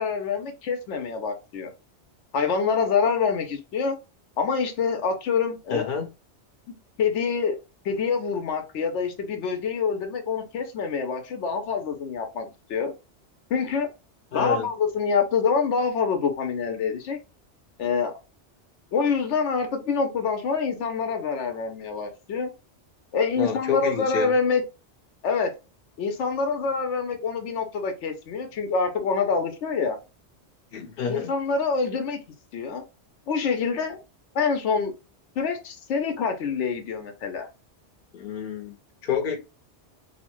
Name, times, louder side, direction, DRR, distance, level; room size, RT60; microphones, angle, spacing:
voice 1, 0.0-1.7 2.3-3.9 4.4-5.9 7.0-7.6 7.8-12.9 13.5-13.9 14.3-17.2 17.8-18.1 18.9-22.5 23.1-24.6 25.2-25.5 26.0-30.0 31.1-32.2 32.5-32.8 33.3-34.0 34.3-34.9 35.4-37.5, left 5 dB, 80° left, 0.9 m, -26 dB
voice 2, 5.7-6.1 14.3-14.6 23.4-24.3 30.7-31.3 38.1-38.7 39.0-39.4, left 6 dB, 55° left, 0.8 m, -28 dB
2.8 x 2.0 x 2.9 m
omnidirectional pair, 1.2 m